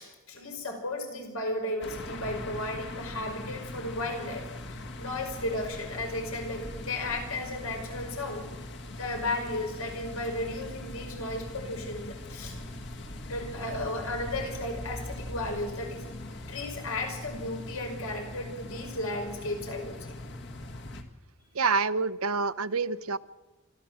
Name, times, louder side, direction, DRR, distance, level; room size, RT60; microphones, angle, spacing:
voice 1, 0.0-8.5 8.9-12.6 13.3-16.0 16.5-20.2, left 2 dB, 85° left, 3 dB, 5.4 m, -34 dB
sound 1, 1.8-21.0, left 1 dB, 55° left, 1.8 m, -41 dB
voice 2, 21.6-23.2, right 4 dB, 90° right, 16 dB, 0.8 m, -27 dB
26.0 x 13.0 x 7.6 m, 1.2 s
head